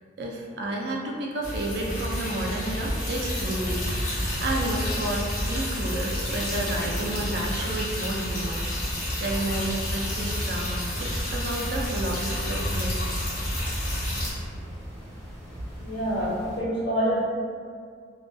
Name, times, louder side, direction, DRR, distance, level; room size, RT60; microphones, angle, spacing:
voice 1, 0.2-3.8 4.4-8.6 8.9-13.0, right 1 dB, 60° right, -1 dB, 0.4 m, -31 dB
sound 1, 1.4-14.3, left 1 dB, 50° left, 0.6 m, -29 dB
sound 2, 8.5-16.6, equal, 5° left, 1.0 m, -43 dB
voice 2, 15.8-17.2, equal, 75° left, -11 dB, 1.1 m, -26 dB
2.5 x 2.2 x 2.2 m, 2.1 s
head